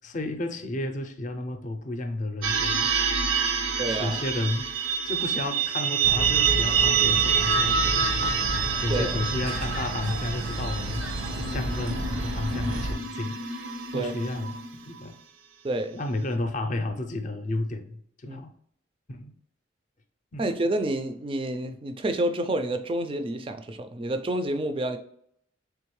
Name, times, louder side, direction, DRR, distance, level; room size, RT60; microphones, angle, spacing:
voice 1, 0.0-3.0 3.4-11.1 11.4-15.2 15.9-18.5 19.1-19.3 20.3-20.5, left 2 dB, 40° left, 6 dB, 0.5 m, -32 dB
sound 1, 2.4-15.0, right 6 dB, 70° right, 0.6 m, -27 dB
voice 2, 3.8-4.2 8.9-9.2 13.9-14.1 15.6-16.0 18.3-18.4 20.4-25.0, right 1 dB, 25° right, 8 dB, 0.3 m, -28 dB
sound 2, 6.0-12.9, right 1 dB, 90° right, 1.0 m, -32 dB
3.7 x 3.5 x 3.1 m, 0.68 s
head